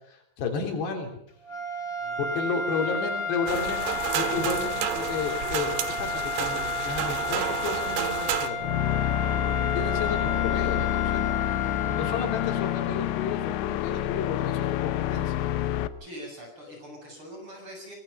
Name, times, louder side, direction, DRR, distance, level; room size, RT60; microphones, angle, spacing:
voice 1, 0.1-1.2 2.2-8.6 9.7-11.2 11.9-15.3, left 5 dB, 75° left, 3 dB, 5.5 m, -32 dB
sound 1, 1.4-13.0, left 4 dB, 30° left, 3.3 m, -32 dB
voice 2, 2.0-3.3 16.0-18.0, equal, 30° right, 2 dB, 8.0 m, -44 dB
sound 2, 3.5-8.5, right 10 dB, 80° right, 3.7 m, -30 dB
sound 3, 8.6-15.9, left 13 dB, 90° left, 3.2 m, -28 dB
24.0 x 21.5 x 5.6 m, 0.74 s
omnidirectional pair, 4.9 m